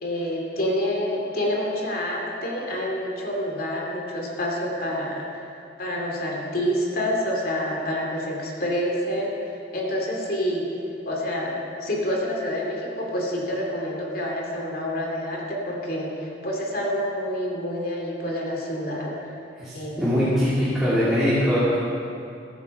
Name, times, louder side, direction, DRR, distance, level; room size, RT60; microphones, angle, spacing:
voice 1, 0.0-5.5 5.8-9.4 9.7-10.7 11.0-19.3 19.7-20.0, equal, 55° left, -2 dB, 2.6 m, -28 dB
voice 2, 19.6-21.8, equal, 5° right, -11 dB, 2.7 m, -22 dB
13.5 x 13.5 x 5.4 m, 2.6 s
head